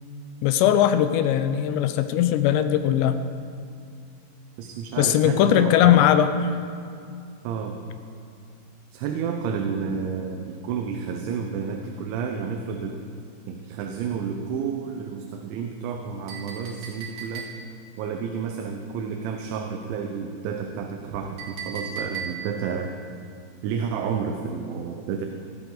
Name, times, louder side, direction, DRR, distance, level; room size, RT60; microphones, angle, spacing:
voice 1, 0.4-3.2 5.0-6.3, left 11 dB, 85° left, 10 dB, 2.6 m, -19 dB
voice 2, 4.6-6.0 7.4-7.8 8.9-13.0 13.5-17.5 18.0-22.9 23.6-25.3, right 6 dB, 80° right, 4 dB, 3.1 m, -30 dB
Chink clink, 16.3-17.9 21.4-22.7, right 6 dB, 50° right, 3.2 m, -37 dB
16.5 x 14.0 x 3.9 m, 2.4 s
omnidirectional pair, 5.4 m